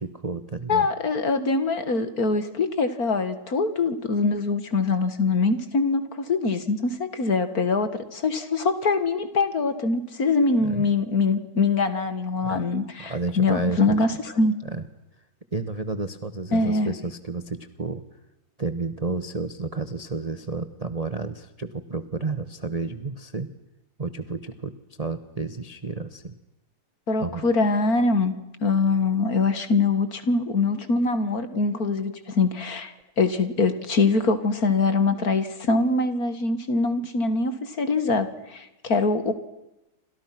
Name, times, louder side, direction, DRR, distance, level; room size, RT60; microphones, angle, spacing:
voice 1, 0.0-0.9 10.6-10.9 12.4-12.6 13.0-14.0 14.6-14.9 15.5-18.0 18.6-23.5 24.0-24.7 25.0-26.3 27.2-27.4, right 3 dB, 25° right, 10 dB, 0.8 m, -31 dB
voice 2, 0.7-14.6 16.5-16.9 27.1-28.3 28.6-39.3, left 3 dB, 45° left, 10 dB, 2.2 m, -23 dB
29.5 x 26.0 x 6.0 m, 0.95 s
omnidirectional pair, 2.3 m